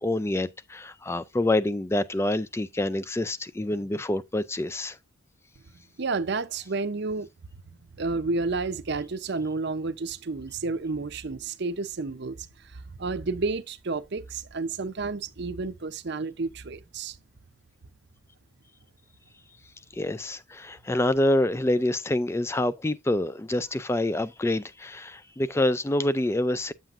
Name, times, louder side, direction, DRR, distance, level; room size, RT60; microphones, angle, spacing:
voice 1, 0.0-5.0 19.9-26.7, left 1 dB, 15° left, 0.3 m, -26 dB
voice 2, 6.0-7.3 7.9-17.2, right 3 dB, 55° right, 0.7 m, -31 dB
8.8 x 7.4 x 2.5 m
head